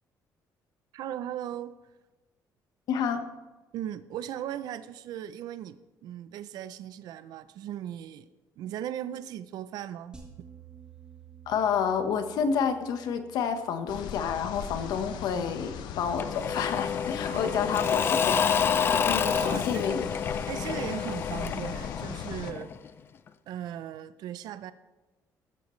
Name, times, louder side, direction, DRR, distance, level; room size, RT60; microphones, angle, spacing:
voice 1, 0.9-1.8 3.7-8.3 8.6-10.2 15.3-15.6 17.3-18.1 19.2-20.0 20.5-22.7 23.5-24.7, right 11 dB, 70° right, 13 dB, 0.5 m, -38 dB
voice 2, 2.9-3.2 11.5-18.6 19.1-20.1, left 7 dB, 70° left, 8 dB, 1.2 m, -29 dB
sound 1, 10.1-14.5, right 7 dB, 15° right, 1.6 m, -52 dB
sound 2, 13.9-22.5, left 8 dB, 90° left, 0.9 m, -39 dB
Engine / Mechanisms / Drill, 16.2-22.9, left 7 dB, 30° left, 0.5 m, -28 dB
14.5 x 13.0 x 3.2 m, 1.2 s
cardioid pair, 170°, 7 cm